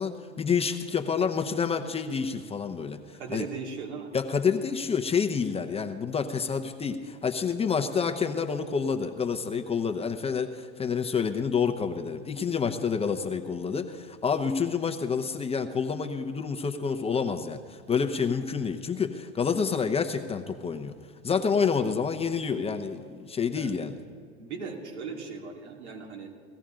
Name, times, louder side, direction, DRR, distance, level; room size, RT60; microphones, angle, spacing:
voice 1, 0.0-3.4 4.1-20.9 21.2-23.9, left 6 dB, 15° left, 6 dB, 0.8 m, -28 dB
voice 2, 3.2-4.1 7.9-8.1 23.5-23.7 24.4-26.5, right 5 dB, 85° right, 0 dB, 2.7 m, -38 dB
18.5 x 14.0 x 3.8 m, 2.1 s
hypercardioid pair, 105°, 33 cm